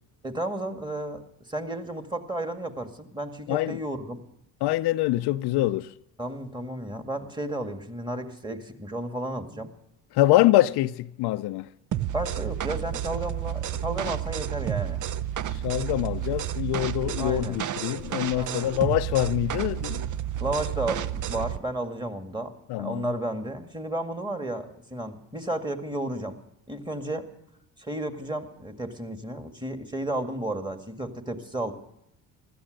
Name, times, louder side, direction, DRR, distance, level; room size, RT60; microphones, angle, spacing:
voice 1, 0.2-4.2 6.2-9.7 12.1-15.0 17.2-17.6 18.3-18.8 20.4-22.5 22.8-26.4 26.7-27.3 27.8-31.7, right 1 dB, 10° right, 2.0 m, -33 dB
voice 2, 3.5-3.8 4.6-5.9 10.1-11.7 15.5-20.1 22.7-23.0, left 16 dB, 70° left, 0.6 m, -24 dB
sound 1, 11.9-21.6, right 10 dB, 45° right, 0.6 m, -31 dB
16.0 x 12.5 x 6.4 m
supercardioid pair, 70°, 42 cm